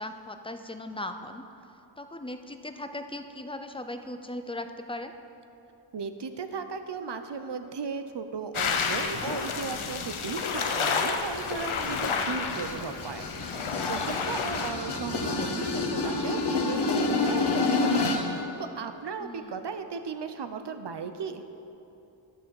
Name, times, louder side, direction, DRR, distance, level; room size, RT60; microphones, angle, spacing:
voice 1, 0.0-1.5 2.0-5.1 14.4-14.5 19.2-19.7, left 1 dB, 10° left, 7 dB, 0.5 m, -38 dB
voice 2, 5.9-21.4, right 5 dB, 60° right, 9 dB, 0.7 m, -36 dB
sound 1, 8.5-14.7, left 5 dB, 85° left, 0.9 m, -30 dB
sound 2, 11.3-18.4, left 3 dB, 55° left, 1.1 m, -29 dB
11.0 x 6.3 x 7.0 m, 2.9 s
wide cardioid pair, 90°, 48 cm